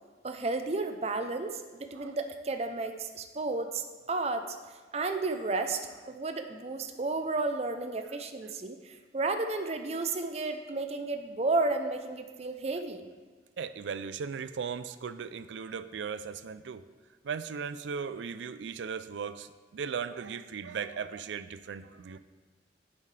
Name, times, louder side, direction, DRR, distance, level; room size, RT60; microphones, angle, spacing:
voice 1, 0.2-4.5 4.9-5.8 6.1-13.1, right 3 dB, 35° right, 7 dB, 0.5 m, -32 dB
voice 2, 13.6-16.8 17.2-19.5 19.7-22.2, right 6 dB, 85° right, 13 dB, 0.4 m, -37 dB
10.0 x 7.4 x 3.3 m, 1.4 s
head